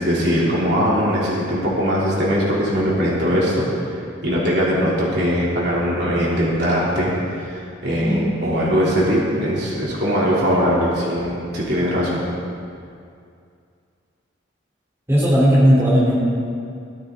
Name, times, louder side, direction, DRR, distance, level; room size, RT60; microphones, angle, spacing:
voice 1, 0.0-12.2, equal, 55° right, -6 dB, 3.1 m, -21 dB
voice 2, 8.0-8.3 15.1-16.1, equal, 15° right, -8 dB, 3.4 m, -16 dB
17.5 x 13.0 x 3.8 m, 2.4 s
head